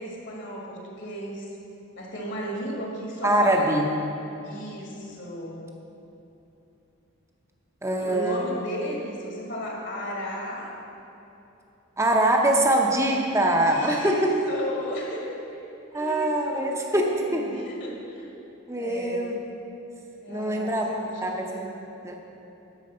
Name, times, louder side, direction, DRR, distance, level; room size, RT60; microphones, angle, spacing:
voice 1, 0.0-1.5 2.0-3.9 4.4-5.7 8.0-10.7 13.7-15.6 15.9-18.3 18.8-19.3 20.2-21.7, equal, 60° left, -2 dB, 1.7 m, -35 dB
voice 2, 3.2-3.9 7.8-8.6 12.0-14.3 15.9-17.4 18.7-19.4 20.3-20.9 21.2-21.5 22.0-22.2, right 1 dB, 15° right, 1 dB, 0.8 m, -23 dB
10.5 x 4.7 x 6.7 m, 3.0 s
head